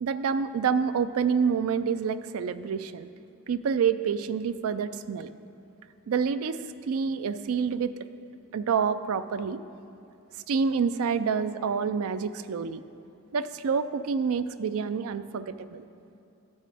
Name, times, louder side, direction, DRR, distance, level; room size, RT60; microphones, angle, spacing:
voice 1, 0.0-3.1 3.5-5.3 6.1-7.9 8.5-9.6 10.5-12.8 13.3-15.8, right 6 dB, 75° right, 13 dB, 0.4 m, -27 dB
12.5 x 7.4 x 3.5 m, 2.8 s
head